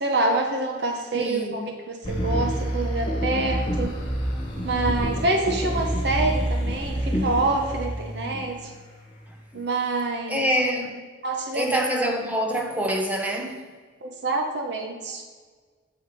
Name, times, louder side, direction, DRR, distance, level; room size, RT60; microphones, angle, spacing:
voice 1, 0.0-3.9 4.6-8.6 9.5-10.4 11.2-11.8 14.0-15.2, right 2 dB, 60° right, 0.8 m, -26 dB
voice 2, 1.1-1.7 10.3-11.0 11.5-13.7, equal, 10° right, 0.7 m, -26 dB
sound 1, 2.0-9.0 9.5-9.6, equal, 25° left, 1.5 m, -28 dB
7.7 x 4.0 x 5.2 m
head